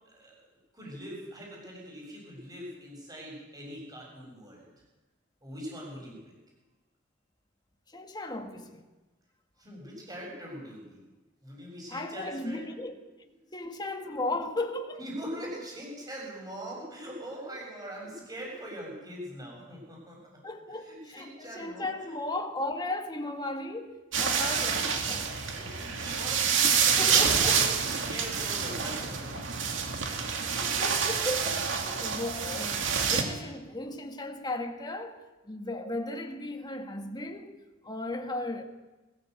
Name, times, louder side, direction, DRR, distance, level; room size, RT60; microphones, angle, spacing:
voice 1, 0.1-0.4 0.7-4.7 5.4-6.3 9.6-11.1 11.4-12.7 15.0-20.2 20.8-22.2 24.4-24.8 25.6-29.5, equal, 20° right, 7.2 m, -42 dB
voice 2, 7.9-8.8 11.9-13.0 13.5-15.0 20.4-25.2 27.0-27.8 30.6-35.2 35.4-37.6 37.8-38.6, left 2 dB, 20° left, 1.8 m, -36 dB
sound 1, 24.1-33.2, right 6 dB, 70° right, 2.5 m, -27 dB
21.0 x 15.5 x 8.1 m
head